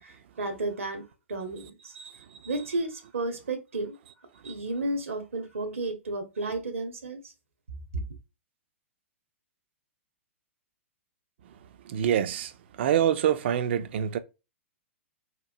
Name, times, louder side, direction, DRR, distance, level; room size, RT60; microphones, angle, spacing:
voice 1, 0.0-2.1 2.4-4.0 4.4-7.3 7.9-8.0, right 2 dB, 80° right, 0.8 m, -33 dB
voice 2, 11.8-14.2, right 10 dB, 55° right, 0.4 m, -26 dB
3.0 x 2.1 x 2.5 m
hypercardioid pair, 115°, 7 cm